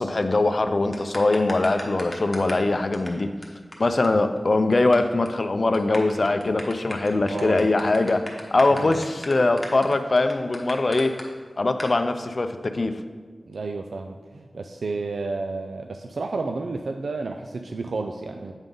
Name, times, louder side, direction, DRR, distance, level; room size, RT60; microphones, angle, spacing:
voice 1, 0.0-3.3 3.8-8.2 8.5-11.1 11.6-12.9, left 2 dB, 50° left, 8 dB, 0.5 m, -22 dB
sound 1, 0.9-2.7 2.9-3.1 3.4-3.5 3.7-3.8 4.0-4.1 4.4-5.0 5.3-5.4 5.7-11.2 11.8-11.9, left 1 dB, 15° left, 1.2 m, -37 dB
voice 2, 7.2-7.9 8.7-9.0 13.5-18.5, right 3 dB, 85° right, 4 dB, 0.4 m, -31 dB
8.0 x 3.8 x 5.3 m, 1.5 s
wide cardioid pair, 65°, 0 cm